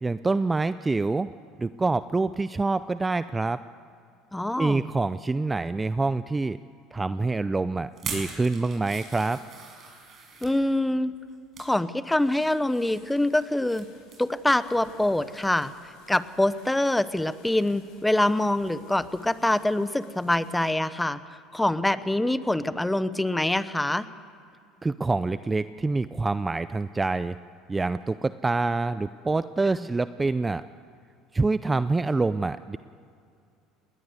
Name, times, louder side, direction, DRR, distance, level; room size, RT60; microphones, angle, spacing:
voice 1, 0.0-1.3 1.6-3.6 4.6-6.6 6.9-9.4 24.8-27.4 27.7-30.6 31.3-32.8, right 3 dB, 15° right, 14 dB, 0.5 m, -26 dB
voice 2, 4.3-4.9 10.4-11.1 11.6-13.9 14.2-15.7 16.1-21.2 21.5-24.1 29.8-29.9, left 1 dB, 5° left, 14 dB, 0.9 m, -25 dB
sound 1, 7.9-10.5 11.2-11.7 12.1-13.8 14.1-14.3 14.7-14.8, right 5 dB, 45° right, 6.3 m, -41 dB
sound 2, 13.0-20.7, left 4 dB, 75° left, 6.2 m, -56 dB
20.0 x 19.0 x 8.1 m, 2.4 s
supercardioid pair, 90°, 0 cm